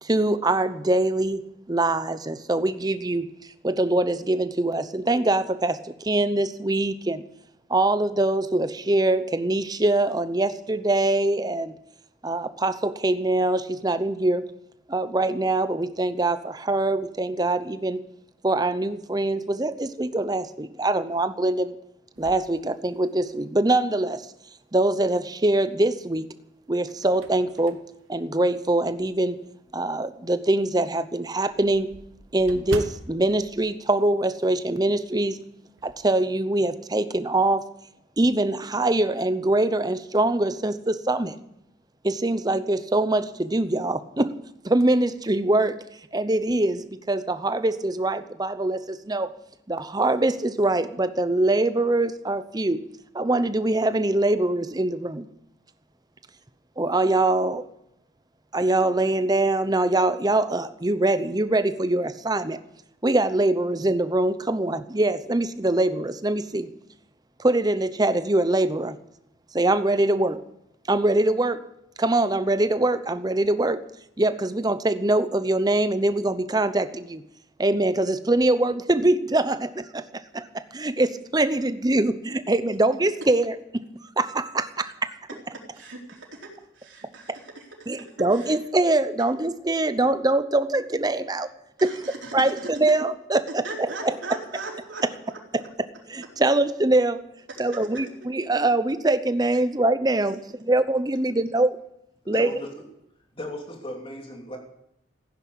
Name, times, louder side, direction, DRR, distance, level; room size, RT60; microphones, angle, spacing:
voice 1, 0.0-1.4 1.7-3.3 3.6-7.2 7.7-11.7 12.2-14.5 14.9-18.0 18.4-21.7 22.2-24.3 24.7-26.3 26.7-27.8 28.1-29.4 29.7-31.9 32.3-35.4 35.8-37.6 38.2-41.4 42.0-44.4 44.6-45.8 46.1-49.3 49.7-52.9 53.1-55.3 56.8-57.7 58.5-62.6 63.0-66.7 67.4-69.0 69.5-70.4 70.9-71.7 72.0-73.9 74.2-77.2 77.6-80.1 80.3-83.8 84.2-85.1 87.9-91.5 91.8-92.0 92.3-93.6 95.5-95.6 96.1-97.3 97.6-101.8 102.3-102.5, right 2 dB, 20° right, 0.8 m, -23 dB
sound 1, 22.2-23.5 24.0-24.1 25.6-26.1 26.6-29.2 29.7-29.8 30.2-30.3 30.6-30.7 30.9-34.7 34.9-35.2 35.5-36.1, right 2 dB, 90° right, 1.4 m, -42 dB
voice 2, 85.7-88.6 91.8-92.9 93.6-95.4 97.9-98.0, right 3 dB, 75° right, 4.1 m, -39 dB
voice 3, 102.2-102.7 103.3-104.6, equal, 30° left, 3.0 m, -36 dB
15.5 x 10.5 x 8.6 m
head